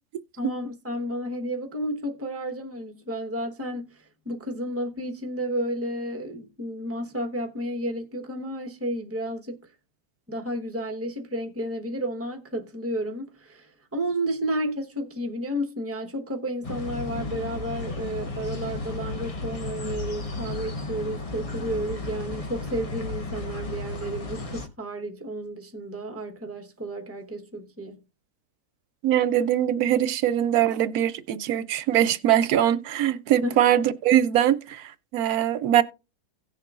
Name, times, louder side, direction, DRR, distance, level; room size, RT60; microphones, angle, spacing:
voice 1, 0.4-9.6 10.3-28.0 33.4-33.6, right 1 dB, 10° right, 0.8 m, -32 dB
sound 1, 16.6-24.7, left 3 dB, 35° left, 0.6 m, -34 dB
voice 2, 29.0-35.8, right 11 dB, 70° right, 1.1 m, -22 dB
17.0 x 6.7 x 2.4 m
omnidirectional pair, 1.7 m